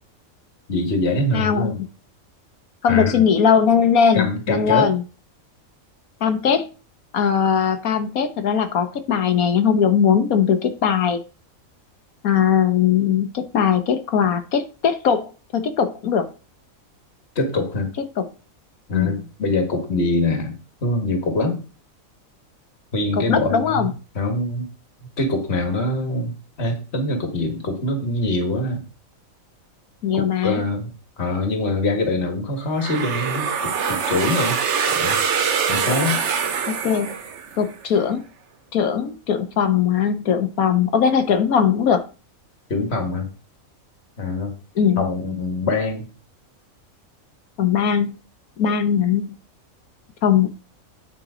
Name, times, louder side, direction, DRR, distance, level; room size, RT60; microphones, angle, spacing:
voice 1, 0.7-1.8 2.9-3.1 4.1-4.9 17.4-17.9 18.9-21.6 22.9-23.9 24.2-24.7 25.2-28.8 30.1-30.9 31.2-34.6 34.9-35.2 35.7-36.2 42.7-43.3 44.2-44.5 45.0-46.1, left 2 dB, 50° left, 2.0 m, -24 dB
voice 2, 1.3-1.9 2.8-5.0 6.2-6.7 7.1-11.2 12.2-16.3 18.0-18.2 18.9-19.2 23.1-23.9 30.0-30.6 36.7-37.1 37.6-38.2 38.7-42.0 44.7-45.1 47.6-48.2 48.6-49.4 50.2-50.5, left 7 dB, 85° left, 1.6 m, -20 dB
sound 1, 32.8-37.7, right 6 dB, 60° right, 1.2 m, -24 dB
9.4 x 5.4 x 5.0 m
omnidirectional pair, 1.5 m